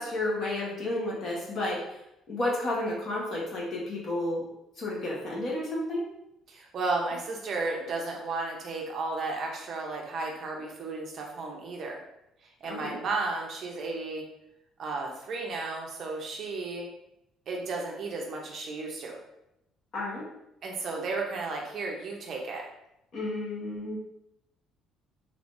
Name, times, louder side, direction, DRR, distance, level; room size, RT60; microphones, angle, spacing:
voice 1, 0.0-1.8 2.3-4.5 4.8-6.1 12.6-13.0 19.9-20.2 23.1-24.0, left 1 dB, 35° left, -4 dB, 1.0 m, -31 dB
voice 2, 6.5-12.0 12.6-14.2 14.8-16.9 17.5-19.2 20.6-22.6, right 3 dB, 40° right, 0 dB, 0.6 m, -33 dB
3.3 x 3.2 x 2.6 m, 0.83 s
cardioid pair, 175°, 0 cm